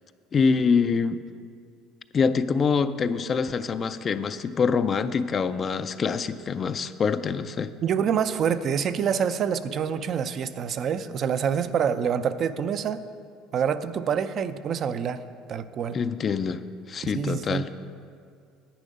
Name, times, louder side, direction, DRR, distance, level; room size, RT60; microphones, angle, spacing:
voice 1, 0.3-1.2 2.1-7.7 15.9-16.6 16.9-17.7, left 5 dB, 35° left, 0.4 m, -25 dB
voice 2, 7.8-13.0 13.5-15.2 15.5-16.0 17.0-17.6, right 7 dB, 45° right, 0.5 m, -26 dB
10.0 x 9.2 x 5.3 m
supercardioid pair, 105°, 0 cm